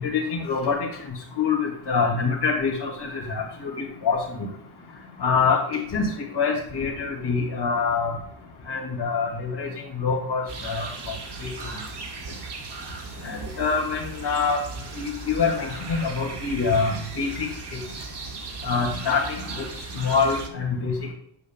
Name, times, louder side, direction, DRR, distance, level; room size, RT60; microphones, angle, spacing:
voice 1, 0.0-0.8 1.4-4.5 5.2-6.1 6.3-8.1 8.7-9.7 9.9-10.9 11.4-11.5 13.2-14.6 14.9-17.5 18.6-19.2 19.6-19.7 20.0-20.9, left 5 dB, 55° left, -5 dB, 2.4 m, -25 dB
sound 1, 10.5-20.5, right 4 dB, 55° right, 2.1 m, -37 dB
9.5 x 9.3 x 2.3 m, 0.69 s
cardioid pair, 80°, 50 cm